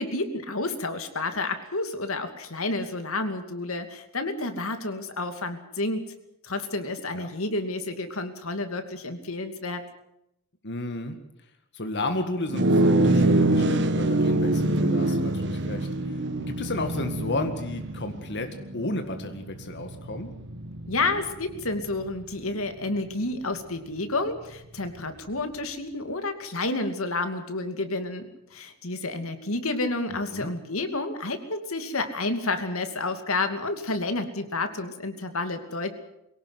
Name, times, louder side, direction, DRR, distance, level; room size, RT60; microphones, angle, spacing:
voice 1, 0.0-6.1 6.4-9.8 20.9-35.9, left 2 dB, 75° left, 7 dB, 2.6 m, -30 dB
voice 2, 10.6-11.2 11.7-15.9 16.5-18.5 18.7-20.3 30.1-30.5, left 2 dB, 55° left, 6 dB, 1.9 m, -32 dB
sound 1, 12.5-22.1, right 2 dB, 55° right, 1.3 m, -25 dB
23.0 x 17.5 x 8.0 m, 0.82 s
head